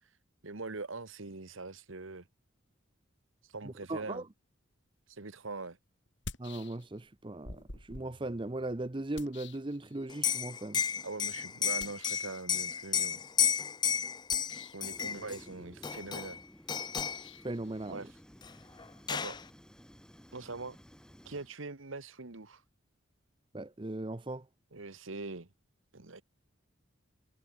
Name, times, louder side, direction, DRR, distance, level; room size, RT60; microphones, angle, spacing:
voice 1, 0.4-2.3 3.5-4.2 5.1-5.8 11.0-13.2 14.7-16.4 17.9-18.1 19.1-19.4 20.3-20.8 21.2-22.6 24.7-25.5 25.9-26.2, right 3 dB, 80° right, 1.5 m, -42 dB
voice 2, 3.6-4.2 6.4-10.8 17.4-18.1 23.5-24.4, right 2 dB, 25° right, 0.7 m, -38 dB
sound 1, 5.1-5.2 6.1-7.1 7.4-10.3 11.8-12.4 14.2-14.9 16.9-19.5, left 3 dB, 60° left, 4.4 m, -50 dB
Liquid, 10.1-15.4 15.8-16.4 16.7-17.3 18.4-18.5 18.8-19.4, left 7 dB, 20° left, 0.5 m, -32 dB
Fire, 14.9-21.5, equal, 5° left, 4.5 m, -55 dB
head